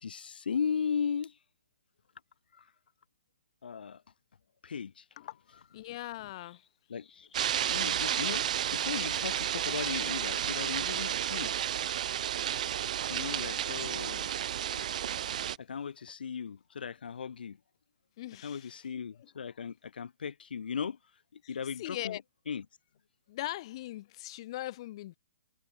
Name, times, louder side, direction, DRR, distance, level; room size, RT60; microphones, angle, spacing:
voice 1, 0.0-1.3 3.6-4.0 4.6-5.0 6.9-8.5 8.7-11.7 13.1-14.3 15.6-17.6 18.4-21.0 21.3-22.2 22.5-22.6, left 6 dB, 70° left, 1.8 m, -37 dB
voice 2, 5.7-6.6 10.4-10.5 14.7-14.9 15.3-15.5 18.2-18.9 19.2-19.3 21.4-22.2 23.3-25.2, left 16 dB, 35° left, 1.5 m, -41 dB
sound 1, 7.3-15.6, right 10 dB, 45° right, 1.2 m, -32 dB
hypercardioid pair, 165°, 5 cm